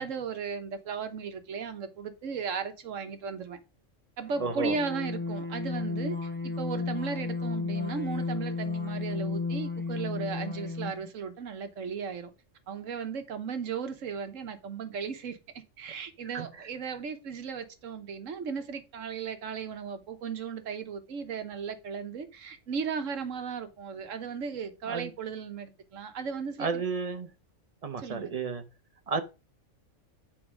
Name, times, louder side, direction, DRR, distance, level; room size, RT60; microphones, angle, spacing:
voice 1, 0.0-3.6 4.2-12.3 12.7-15.4 15.8-26.8 28.0-28.3, right 5 dB, 85° right, 1.4 m, -36 dB
sound 1, 4.3-11.1, left 4 dB, 10° left, 0.7 m, -33 dB
voice 2, 4.4-4.7 16.3-16.5 24.9-25.1 26.6-27.3 27.8-28.6 29.1-29.2, right 5 dB, 30° right, 1.0 m, -31 dB
8.0 x 4.3 x 4.9 m
omnidirectional pair, 1.3 m